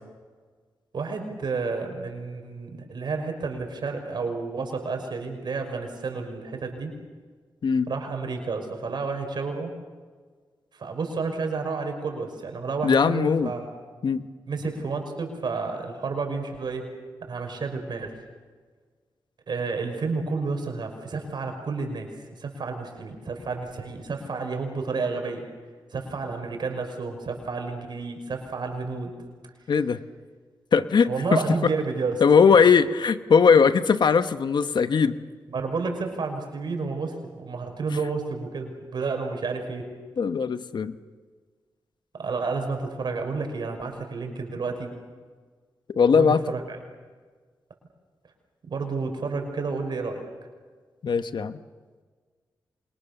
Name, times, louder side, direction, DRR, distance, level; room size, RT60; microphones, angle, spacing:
voice 1, 0.9-6.9 7.9-9.7 10.7-13.7 14.5-16.9 17.2-18.1 19.5-25.5 25.9-29.2 31.0-32.2 35.5-39.9 42.1-44.9 46.1-46.8 48.6-50.2, right 4 dB, 70° right, 4 dB, 5.6 m, -30 dB
voice 2, 12.8-13.5 14.0-14.3 29.7-30.0 30.7-31.4 32.2-35.1 40.2-41.0 45.9-46.4 51.0-51.6, left 6 dB, 70° left, 11 dB, 1.2 m, -19 dB
28.0 x 26.5 x 6.8 m, 1.5 s
cardioid pair, 55°, 8 cm